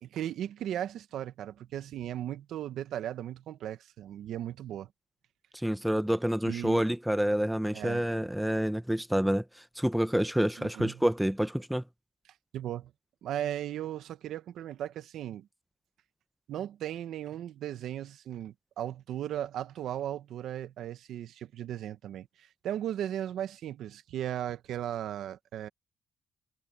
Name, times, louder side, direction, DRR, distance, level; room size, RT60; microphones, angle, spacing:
voice 1, 0.0-4.9 6.4-6.8 7.7-8.0 10.6-11.0 12.5-12.9 13.2-15.5 16.5-25.7, right 11 dB, 75° right, 1.3 m, -36 dB
voice 2, 5.5-11.8, equal, 5° right, 0.8 m, -28 dB
cardioid pair, 90°, 0 cm